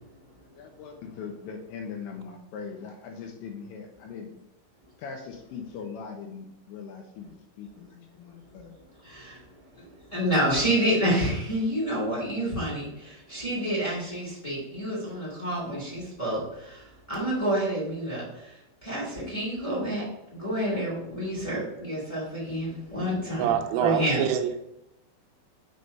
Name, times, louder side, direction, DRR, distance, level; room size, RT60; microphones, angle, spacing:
voice 1, 0.5-4.3 5.0-7.9 8.2-8.8, left 6 dB, 80° left, 2.8 m, -40 dB
voice 2, 10.1-16.4 17.1-18.2 18.8-20.0 20.3-23.5 23.8-24.2, right 1 dB, 15° left, 1.2 m, -28 dB
voice 3, 23.4-24.6, right 9 dB, 85° right, 3.1 m, -25 dB
7.9 x 3.3 x 5.4 m
omnidirectional pair, 5.7 m